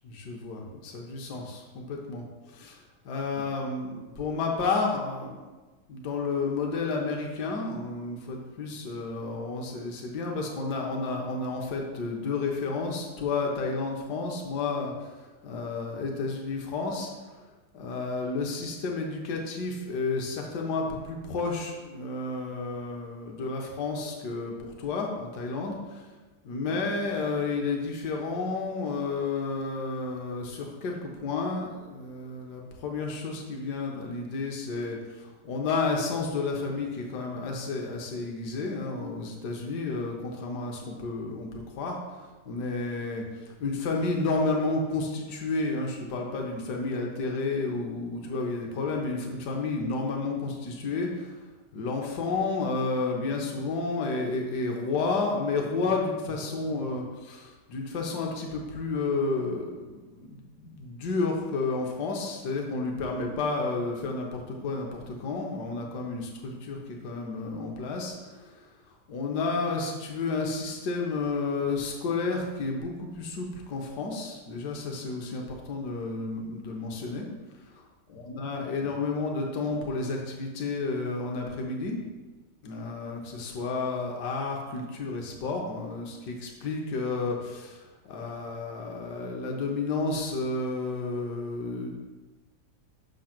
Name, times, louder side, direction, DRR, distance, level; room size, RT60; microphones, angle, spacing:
voice 1, 0.0-5.4 5.9-15.1 15.4-17.1 17.7-26.1 26.4-51.4 51.7-68.7 69.1-77.3 77.7-77.8 78.1-82.0 82.6-92.0, left 3 dB, 70° left, 1 dB, 1.5 m, -31 dB
6.1 x 3.8 x 5.9 m, 1.2 s
omnidirectional pair, 1.9 m